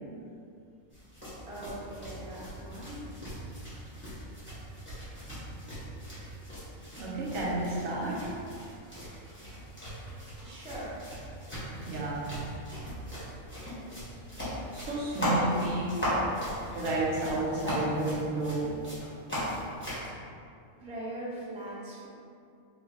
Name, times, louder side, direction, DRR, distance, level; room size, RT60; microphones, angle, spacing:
sound 1, 0.9-20.1, equal, 10° left, 1.1 m, -38 dB
voice 1, 1.5-3.0 10.4-11.0 14.3-14.5 20.8-22.1, right 1 dB, 10° right, -8 dB, 0.3 m, -41 dB
voice 2, 7.0-8.3 11.9-12.5 14.7-16.0 16.7-18.9, right 2 dB, 75° right, -5 dB, 1.1 m, -31 dB
3.2 x 2.6 x 3.4 m, 2.5 s
omnidirectional pair, 1.4 m